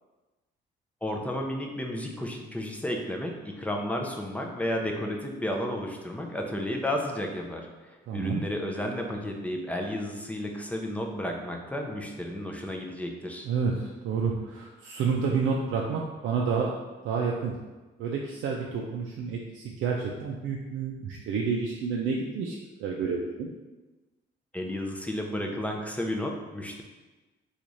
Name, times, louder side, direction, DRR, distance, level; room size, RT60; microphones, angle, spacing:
voice 1, 1.0-13.5 24.5-26.8, left 1 dB, 5° left, 1 dB, 0.5 m, -32 dB
voice 2, 8.1-8.4 13.4-16.8 17.0-17.5 18.0-23.5, right 5 dB, 75° right, -1 dB, 0.4 m, -29 dB
3.0 x 2.4 x 3.9 m, 1.2 s
cardioid pair, 90°, 20 cm